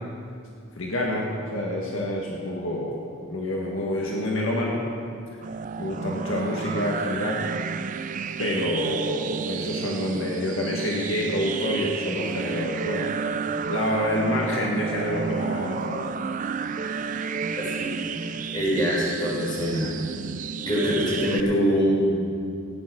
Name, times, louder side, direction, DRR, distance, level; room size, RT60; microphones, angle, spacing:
voice 1, 0.8-3.0 3.3-4.8 5.8-7.4 8.4-13.1 13.7-16.1, left 1 dB, 65° left, -2 dB, 1.7 m, -27 dB
sound 1, 5.4-21.4, right 5 dB, 35° right, 0.3 m, -31 dB
voice 2, 17.6-17.9 18.2-19.9 20.7-22.2, equal, 20° left, -6 dB, 4.1 m, -24 dB
16.5 x 9.3 x 6.1 m, 2.3 s
head